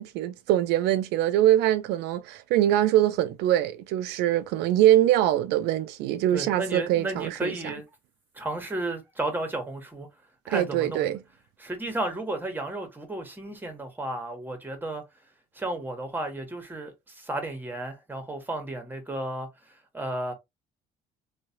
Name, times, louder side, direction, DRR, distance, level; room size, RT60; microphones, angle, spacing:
voice 1, 0.0-7.5 10.5-11.2, right 12 dB, 85° right, 0.4 m, -23 dB
voice 2, 6.3-7.8 8.3-10.1 10.4-11.2 11.6-15.0 15.5-20.3, right 2 dB, 10° right, 1.1 m, -33 dB
3.1 x 2.3 x 2.7 m
cardioid pair, 110°, 17 cm